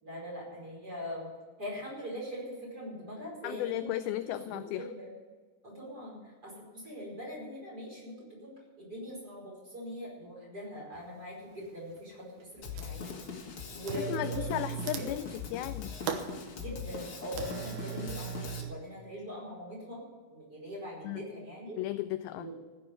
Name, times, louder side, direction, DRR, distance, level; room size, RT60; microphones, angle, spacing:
voice 1, 0.0-1.3 1.6-3.9 4.2-5.1 5.6-13.2 13.7-14.4 14.9-15.0 16.5-20.0 20.3-21.8 22.4-22.6, equal, 25° right, -3 dB, 5.4 m, -42 dB
voice 2, 3.4-4.9 14.0-16.0 21.0-21.2 21.8-22.5, left 14 dB, 85° left, 11 dB, 2.1 m, -35 dB
sound 1, 10.9-11.0 11.6-12.1 12.4-13.1 13.8-18.7, right 9 dB, 75° right, 2.8 m, -39 dB
Drum kit, 12.6-18.6, left 6 dB, 50° left, 1.8 m, -42 dB
15.0 x 7.7 x 8.4 m, 1.4 s
omnidirectional pair, 4.7 m